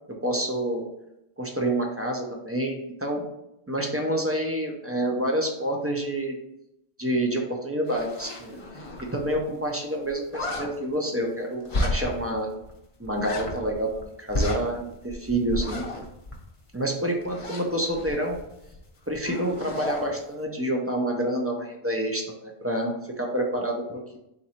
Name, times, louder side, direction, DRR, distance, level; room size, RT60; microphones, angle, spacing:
voice 1, 0.2-0.9 1.4-3.3 3.7-6.3 7.0-8.6 9.1-12.5 13.0-15.9 16.7-18.4 19.1-22.9 23.2-24.0, right 1 dB, 20° right, 0 dB, 0.4 m, -28 dB
sound 1, 7.9-9.4 9.6-9.7 10.0-10.7 11.7-12.3 12.6-12.7 13.0-14.0 14.3-16.8 17.2-18.8 19.1-20.1, left 1 dB, 35° left, 0.7 m, -32 dB
4.0 x 2.5 x 4.2 m, 0.84 s
omnidirectional pair, 1.1 m